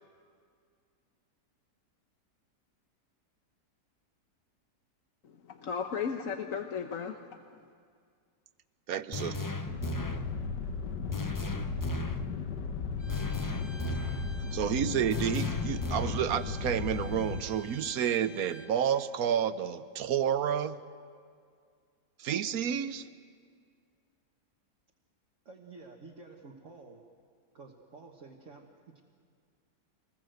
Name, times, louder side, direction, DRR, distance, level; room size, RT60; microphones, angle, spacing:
voice 1, 5.2-7.4, left 6 dB, 55° left, 1.2 m, -35 dB
voice 2, 8.9-9.5 14.5-20.8 22.2-23.1, right 9 dB, 65° right, 1.2 m, -30 dB
sound 1, 9.1-10.3 11.1-12.3 13.1-14.3 15.1-16.3, left 2 dB, 30° left, 0.3 m, -35 dB
sound 2, 9.7-17.4, left 5 dB, 85° left, 1.8 m, -36 dB
Bowed string instrument, 13.0-18.7, equal, ahead, 2.0 m, -53 dB
voice 3, 25.5-27.0 27.5-29.0, right 3 dB, 50° right, 1.7 m, -51 dB
25.5 x 20.0 x 7.8 m
omnidirectional pair, 1.8 m